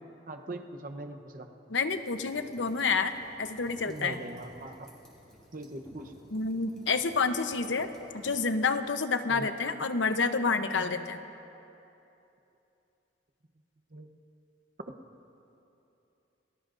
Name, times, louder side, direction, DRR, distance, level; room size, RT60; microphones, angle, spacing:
voice 1, 0.3-1.5 3.9-4.9 5.5-6.2 9.3-9.5 13.9-14.2, right 2 dB, 50° right, 6 dB, 0.9 m, -41 dB
voice 2, 1.7-4.2 6.3-11.2, left 4 dB, 75° left, 8 dB, 0.8 m, -29 dB
sound 1, 1.9-8.6, equal, 5° left, 4.4 m, -56 dB
29.5 x 18.5 x 2.6 m, 2.9 s
head